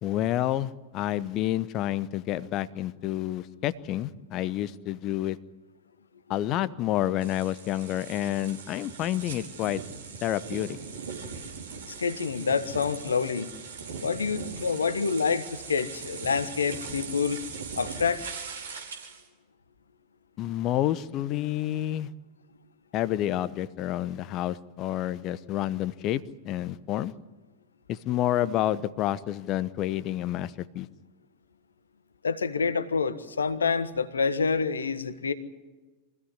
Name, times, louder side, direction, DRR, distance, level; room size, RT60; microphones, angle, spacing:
voice 1, 0.0-5.4 6.3-9.8 10.2-10.8 20.4-22.1 22.9-27.1 27.9-30.9, left 13 dB, 35° left, 16 dB, 0.9 m, -29 dB
sound 1, 7.2-19.2, right 5 dB, 70° right, 4.7 m, -40 dB
voice 2, 11.9-13.5 14.0-17.4 17.8-18.2 32.2-35.3, left 5 dB, 70° left, 11 dB, 1.4 m, -27 dB
24.0 x 16.0 x 9.7 m, 1.2 s
figure-of-eight pair, 90°, 0 cm